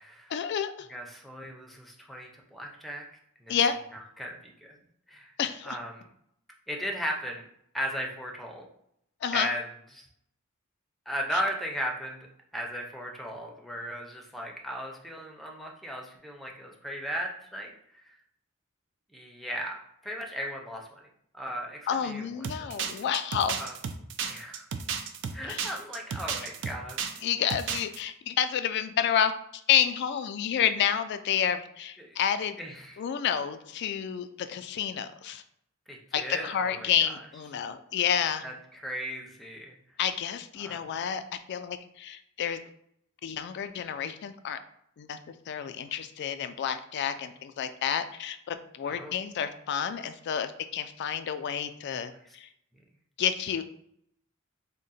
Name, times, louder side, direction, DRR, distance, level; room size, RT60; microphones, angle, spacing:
voice 1, 0.3-0.9 3.5-3.8 5.4-5.8 9.2-9.5 11.3-11.4 21.9-23.6 25.5-25.7 27.2-32.6 33.0-35.4 36.1-38.4 40.0-41.2 41.5-42.6 43.2-44.6 45.0-45.2 45.5-52.5 53.2-53.6, left 8 dB, 55° left, 10 dB, 0.3 m, -29 dB
voice 2, 0.9-3.0 3.4-3.5 3.9-4.8 5.1-5.3 5.6-6.1 6.7-7.5 7.7-8.7 9.3-9.6 9.9-10.0 11.1-12.3 12.5-17.7 18.0-18.1 19.1-21.1 21.3-22.3 22.6-22.7 23.6-23.8 24.2-24.7 25.3-27.2 32.0-32.2 32.6-33.0 35.9-37.2 38.4-39.7 40.6-40.8 48.9-49.2 52.2-52.4, equal, ahead, 0 dB, 0.5 m, -36 dB
sound 1, 22.4-27.2 27.5-28.0, right 6 dB, 60° right, 0.4 m, -33 dB
3.6 x 2.1 x 4.0 m, 0.72 s
head